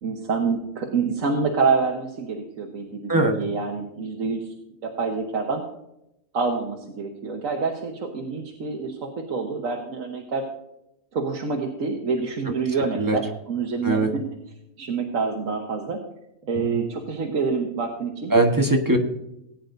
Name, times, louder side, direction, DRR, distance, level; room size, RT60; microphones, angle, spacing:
voice 1, 0.0-4.5 4.8-5.6 6.3-10.4 11.1-14.2 14.8-16.0 16.4-18.4 18.9-19.0, right 4 dB, 55° right, 1 dB, 1.5 m, -27 dB
voice 2, 18.3-19.0, right 2 dB, 15° right, 2 dB, 1.1 m, -20 dB
19.0 x 9.3 x 2.6 m, 0.84 s
omnidirectional pair, 1.7 m